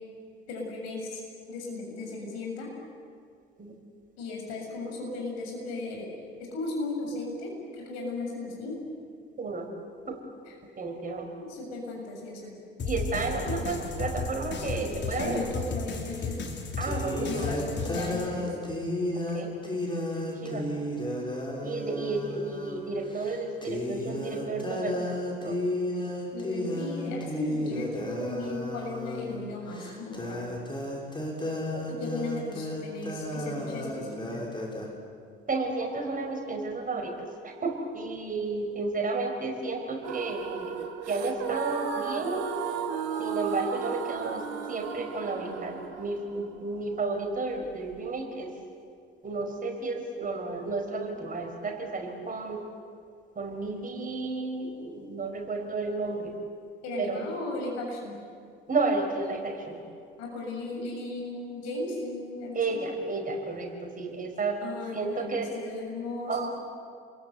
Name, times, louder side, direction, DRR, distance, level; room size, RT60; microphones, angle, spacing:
voice 1, 0.5-2.7 4.2-6.1 6.5-8.8 10.5-10.6 11.3-12.5 13.5-13.6 15.2-16.4 17.2-18.6 26.3-30.5 31.9-34.4 56.8-58.2 60.2-62.8 64.6-66.5, left 2 dB, 60° left, 0 dB, 7.2 m, -36 dB
voice 2, 10.7-11.3 12.8-15.5 16.8-17.5 19.3-19.5 20.2-20.6 21.6-25.1 25.4-25.6 31.7-31.8 35.5-40.8 41.1-42.5 43.2-48.5 49.2-52.6 53.3-56.3 57.0-57.2 58.7-59.8 62.5-64.6 64.9-65.5 66.3-66.5, right 3 dB, 25° right, 3 dB, 4.9 m, -32 dB
sound 1, 12.8-18.3, left 4 dB, 35° left, 3.5 m, -34 dB
sound 2, 15.9-16.0 16.8-22.8 23.2-23.4 23.6-34.9, left 1 dB, 15° left, 6.3 m, -33 dB
sound 3, 40.0-48.0, right 8 dB, 55° right, 1.9 m, -35 dB
28.5 x 22.0 x 8.1 m, 2.3 s
figure-of-eight pair, 60°, 30 cm